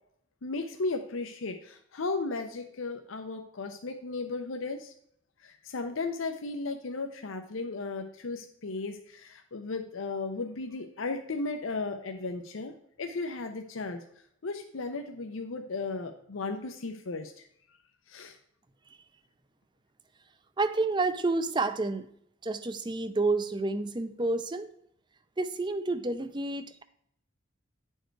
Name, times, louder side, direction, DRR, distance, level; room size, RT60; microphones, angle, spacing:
voice 1, 0.4-4.9 5.4-14.0 14.4-17.5 18.1-18.4, left 3 dB, 85° left, 5 dB, 0.7 m, -35 dB
voice 2, 20.6-22.1 22.4-24.7 25.4-26.8, right 3 dB, 20° right, 11 dB, 0.5 m, -29 dB
10.0 x 4.6 x 4.6 m, 0.70 s
head